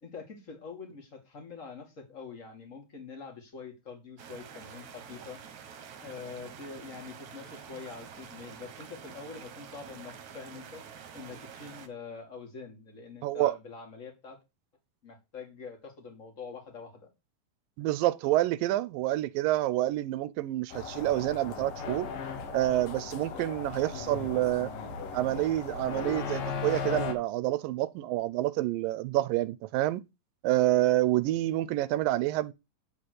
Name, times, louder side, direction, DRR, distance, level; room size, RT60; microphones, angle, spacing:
voice 1, 0.0-5.4 6.0-10.8 11.1-14.4 15.0-17.1, left 5 dB, 25° left, 2.2 m, -45 dB
sound 1, 4.2-11.9, right 7 dB, 65° right, 2.4 m, -47 dB
voice 2, 13.2-13.5 17.8-22.1 22.5-24.7 25.1-30.0 30.4-32.5, right 15 dB, 85° right, 2.3 m, -28 dB
sound 2, 20.7-27.1, left 5 dB, 75° left, 3.0 m, -37 dB
10.0 x 4.2 x 6.5 m
omnidirectional pair, 4.0 m